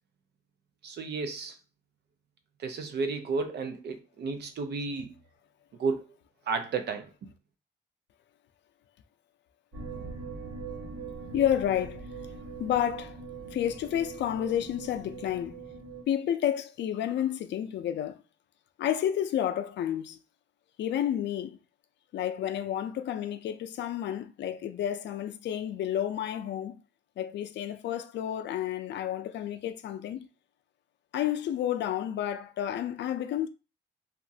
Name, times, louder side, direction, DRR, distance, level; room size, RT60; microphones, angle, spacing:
voice 1, 0.8-1.6 2.6-5.1 5.8-6.1 6.5-7.3, right 4 dB, 65° right, 0.5 m, -32 dB
sound 1, 9.7-16.0, right 4 dB, 85° right, 1.2 m, -42 dB
voice 2, 11.3-12.1 12.6-13.2 13.5-15.6 16.1-18.2 18.8-20.2 20.8-21.6 22.1-26.8 27.2-30.3 31.1-33.5, left 10 dB, 75° left, 0.4 m, -30 dB
2.9 x 2.4 x 2.7 m
wide cardioid pair, 160°, 18 cm